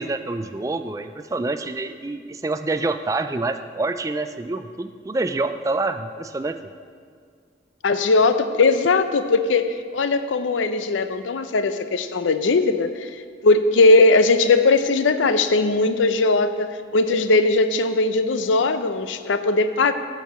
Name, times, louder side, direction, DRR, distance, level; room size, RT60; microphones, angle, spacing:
voice 1, 0.0-6.6, right 2 dB, 15° right, 9 dB, 0.3 m, -27 dB
voice 2, 7.8-13.1 13.4-19.9, left 3 dB, 85° left, 10 dB, 0.5 m, -19 dB
10.0 x 4.7 x 6.9 m, 2.2 s
head